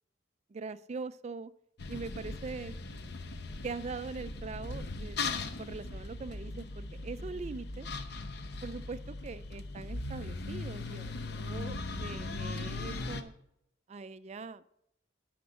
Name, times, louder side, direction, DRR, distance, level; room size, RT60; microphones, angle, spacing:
voice 1, 0.5-1.5 1.9-2.8 3.6-7.9 8.6-13.3 13.9-14.8, right 4 dB, 35° right, 15 dB, 0.3 m, -42 dB
sound 1, 1.8-13.2, left 3 dB, 60° left, 0.7 m, -39 dB
10.0 x 5.1 x 6.9 m, 0.80 s
head